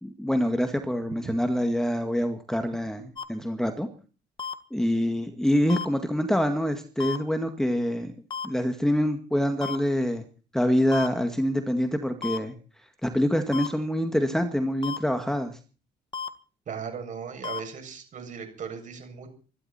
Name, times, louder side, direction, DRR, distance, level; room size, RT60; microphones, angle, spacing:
voice 1, 0.0-3.9 4.7-8.1 8.4-10.2 10.5-12.5 13.0-15.5, equal, 5° left, 6 dB, 2.0 m, -25 dB
sound 1, 3.2-3.3 4.4-4.5 5.7-5.9 7.0-7.2 8.3-8.5 9.6-9.8 10.9-11.1 12.2-12.4 13.5-13.7 14.8-15.0 16.1-16.3 17.4-17.6, left 6 dB, 25° left, 1.8 m, -32 dB
voice 2, 16.7-19.3, right 6 dB, 50° right, 5 dB, 7.2 m, -37 dB
25.5 x 12.5 x 4.4 m, 0.38 s
cardioid pair, 110°, 17 cm